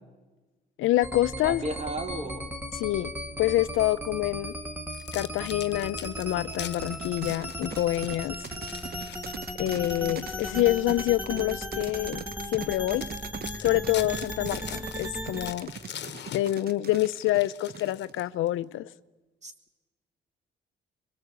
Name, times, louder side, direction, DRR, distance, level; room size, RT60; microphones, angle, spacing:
voice 1, 0.8-1.6 2.7-3.1 3.4-4.5 5.1-8.4 9.6-12.2 12.5-13.0 13.6-15.7 16.3-18.9, left 15 dB, 85° left, 0.7 m, -27 dB
sound 1, 1.0-15.5, equal, 10° right, 2.8 m, -37 dB
voice 2, 1.4-2.5 19.4-19.5, right 1 dB, 35° right, 4.0 m, -34 dB
sound 2, 4.9-11.4 11.9-12.1 12.6-12.7 13.0-18.5, left 9 dB, 60° left, 1.3 m, -43 dB
sound 3, 6.8-18.3, right 7 dB, 50° right, 1.1 m, -41 dB
25.0 x 24.0 x 8.3 m
cardioid pair, 90°, 20 cm